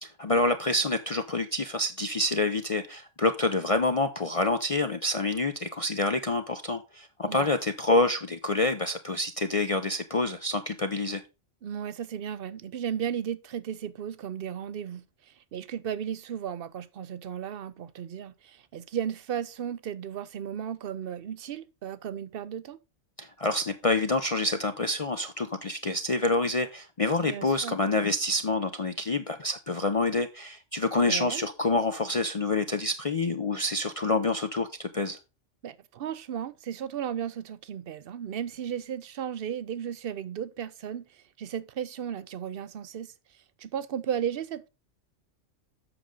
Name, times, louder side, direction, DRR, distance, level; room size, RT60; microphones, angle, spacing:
voice 1, 0.0-11.2 23.2-35.2, left 2 dB, 40° left, 0.5 m, -27 dB
voice 2, 11.6-22.8 27.2-27.8 31.0-31.4 35.6-43.1 43.6-44.7, right 9 dB, 60° right, 0.7 m, -35 dB
7.7 x 6.3 x 3.8 m
omnidirectional pair, 1.2 m